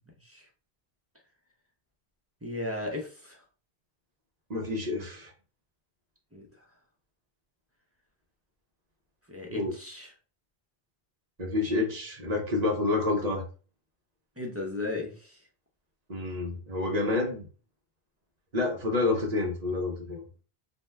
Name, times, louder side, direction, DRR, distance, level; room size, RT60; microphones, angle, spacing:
voice 1, 2.4-3.4 6.3-6.7 9.3-10.1 14.4-15.5, left 2 dB, 20° right, -2 dB, 0.5 m, -36 dB
voice 2, 4.5-5.3 9.5-9.7 11.4-13.4 16.1-17.5 18.5-20.2, left 3 dB, 45° right, 1 dB, 0.8 m, -28 dB
2.7 x 2.1 x 3.2 m, 0.36 s
omnidirectional pair, 1.1 m